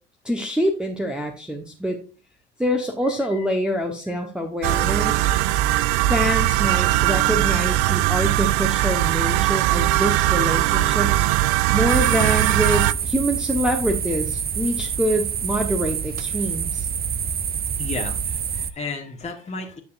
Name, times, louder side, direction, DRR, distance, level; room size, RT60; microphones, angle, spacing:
voice 1, 0.2-2.0 2.6-5.3 6.1-11.3 11.7-16.9, equal, ahead, 0 dB, 1.2 m, -25 dB
sound 1, 4.6-12.9, right 15 dB, 65° right, 0.5 m, -20 dB
sound 2, 11.9-18.7, right 7 dB, 25° right, 0.7 m, -27 dB
voice 2, 17.8-19.8, left 4 dB, 20° left, 1 dB, 1.5 m, -33 dB
9.5 x 6.8 x 2.6 m, 0.37 s
hypercardioid pair, 60°, 36 cm